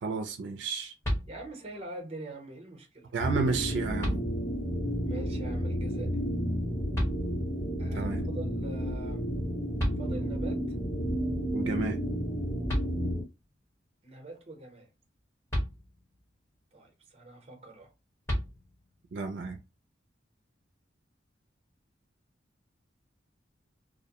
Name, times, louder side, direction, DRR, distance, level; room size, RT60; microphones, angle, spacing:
voice 1, 0.0-0.9 3.1-4.2 7.9-8.2 11.5-12.0 19.1-19.6, right 4 dB, 75° right, 0.4 m, -32 dB
sound 1, 1.0-1.8 3.3-3.4 4.0-4.8 6.9-7.7 9.5-9.6 9.8-10.6 12.3-12.4 12.7-13.4 15.5-16.3 18.3-19.0, equal, 15° left, 1.0 m, -34 dB
voice 2, 1.3-3.1 5.1-6.2 7.8-9.3 10.0-10.7 14.0-14.9 16.7-17.9, right 2 dB, 35° right, 0.8 m, -44 dB
sound 2, 3.2-13.2, equal, 45° left, 1.3 m, -31 dB
2.5 x 2.1 x 2.8 m
head